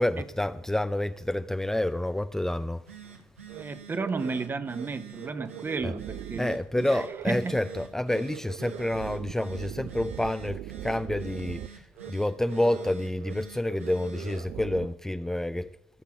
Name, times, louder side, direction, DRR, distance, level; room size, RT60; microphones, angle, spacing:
voice 1, 0.0-2.8 5.8-5.9 6.4-15.7, left 1 dB, 5° left, 0.6 m, -28 dB
Telephone, 2.6-14.5, right 6 dB, 85° right, 1.3 m, -49 dB
voice 2, 3.5-7.6, right 4 dB, 30° right, 1.2 m, -33 dB
sound 1, 3.5-3.6 4.0-4.5 4.7-4.9 5.2-6.6 6.9-7.4 7.7-7.8 8.1-11.7 12.0-12.1 12.4-12.9 13.2-13.3 13.6-14.9, right 12 dB, 55° right, 0.5 m, -41 dB
15.5 x 7.4 x 7.2 m
figure-of-eight pair, 45°, 7 cm